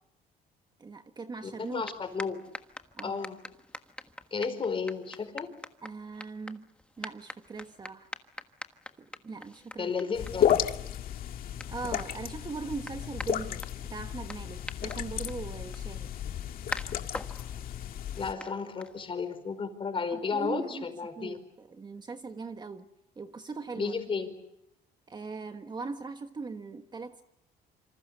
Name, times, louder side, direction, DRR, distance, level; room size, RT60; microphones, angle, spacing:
voice 1, 0.8-1.8 3.0-3.2 5.8-6.7 7.0-8.1 9.0-9.9 11.7-16.1 20.1-20.9 21.2-22.9 23.2-23.9 25.1-27.2, right 4 dB, 25° right, 1.3 m, -40 dB
voice 2, 1.4-2.4 3.0-3.4 4.3-5.5 9.8-10.6 18.2-21.4 23.7-24.3, left 5 dB, 30° left, 4.9 m, -33 dB
sound 1, 1.6-19.4, left 1 dB, 5° left, 1.4 m, -46 dB
sound 2, 10.1-18.3, left 10 dB, 60° left, 1.9 m, -33 dB
27.0 x 26.0 x 6.8 m
cardioid pair, 110°, 17 cm